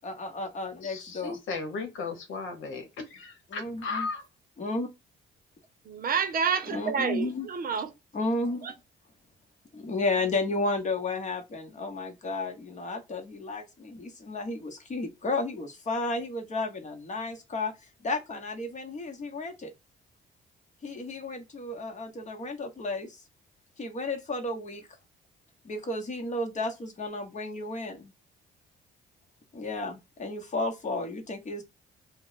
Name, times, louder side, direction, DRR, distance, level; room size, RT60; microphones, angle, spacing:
voice 1, 0.0-1.4 3.5-4.1 4.6-4.9 6.7-7.5 8.1-8.7 9.7-19.7 20.8-23.2 23.8-24.9 25.6-28.1 29.5-31.6, left 2 dB, 35° left, 0.9 m, -33 dB
voice 2, 0.8-4.2, left 4 dB, 80° left, 0.9 m, -36 dB
voice 3, 5.8-7.9 8.6-8.7, right 6 dB, 45° right, 0.7 m, -29 dB
2.3 x 2.1 x 3.9 m
cardioid pair, 90°, 20 cm